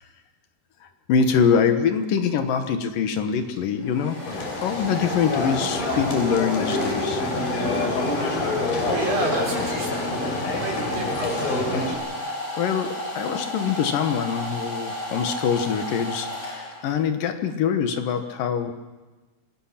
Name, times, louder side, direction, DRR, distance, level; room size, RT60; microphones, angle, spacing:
voice 1, 1.1-4.2 4.6-7.2 12.2-18.7, left 7 dB, 75° left, 7 dB, 2.9 m, -24 dB
Domestic sounds home sounds, 3.3-17.0, left 1 dB, 35° left, 6.5 m, -32 dB
sound 1, 4.3-12.0, left 2 dB, 90° left, 5.3 m, -27 dB
voice 2, 8.8-10.1 10.5-11.6, right 3 dB, 75° right, 0 dB, 6.4 m, -30 dB
26.5 x 19.5 x 5.9 m, 1.2 s
omnidirectional pair, 4.1 m